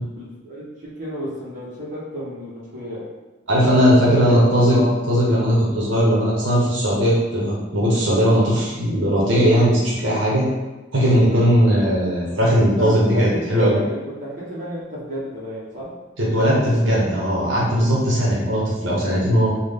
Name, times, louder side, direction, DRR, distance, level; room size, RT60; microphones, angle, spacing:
voice 1, 0.0-3.0 4.0-5.2 12.2-12.5 12.8-15.9, equal, 40° right, -7 dB, 0.9 m, -31 dB
voice 2, 3.5-4.8 5.1-10.5 10.9-13.8 16.2-19.5, equal, 70° right, -5 dB, 0.8 m, -18 dB
3.5 x 2.1 x 3.5 m, 1.1 s
head